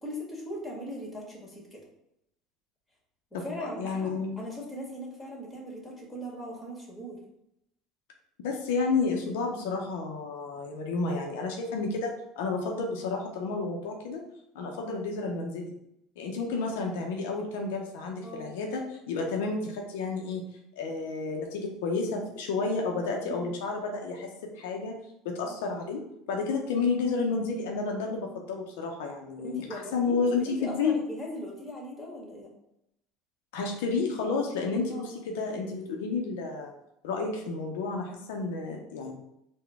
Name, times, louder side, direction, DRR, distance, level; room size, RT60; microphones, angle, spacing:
voice 1, 0.0-1.8 3.3-7.2 18.2-18.6 23.3-23.5 25.5-25.6 29.4-30.2 30.4-32.5 34.9-35.2, equal, 10° left, -2 dB, 1.5 m, -39 dB
voice 2, 3.3-4.4 8.4-14.2 14.5-15.7 16.2-20.4 20.8-24.3 24.5-24.9 25.2-26.0 26.3-31.0 33.5-36.7 37.0-39.1, left 4 dB, 80° left, 1 dB, 0.5 m, -31 dB
3.7 x 2.1 x 3.4 m, 0.81 s
hypercardioid pair, 85°, 0 cm